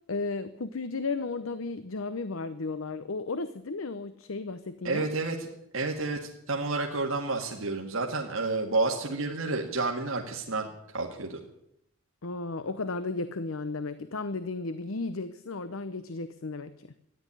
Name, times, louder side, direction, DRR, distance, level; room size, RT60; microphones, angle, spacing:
voice 1, 0.1-5.1 12.2-16.9, left 3 dB, 75° left, 13 dB, 0.8 m, -34 dB
voice 2, 4.8-5.5 5.7-11.4, right 3 dB, 75° right, 0 dB, 1.9 m, -30 dB
14.0 x 10.5 x 9.8 m, 0.80 s
head